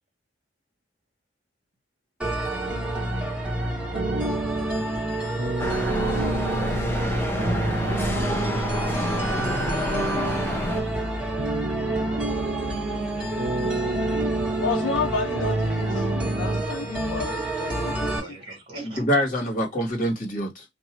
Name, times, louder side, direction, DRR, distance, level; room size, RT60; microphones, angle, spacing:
sound 1, 2.2-18.2, right 1 dB, 5° right, 1.4 m, -29 dB
sound 2, 3.9-16.6, right 3 dB, 50° right, 0.6 m, -30 dB
sound 3, 5.6-10.8, left 1 dB, 10° left, 0.8 m, -29 dB
voice 1, 9.5-10.0 18.8-20.6, equal, 45° left, 1.6 m, -26 dB
voice 2, 13.4-14.2 18.2-19.1, right 2 dB, 30° right, 1.3 m, -44 dB
voice 3, 14.6-18.2, left 5 dB, 85° left, 0.5 m, -31 dB
2.8 x 2.6 x 4.3 m
head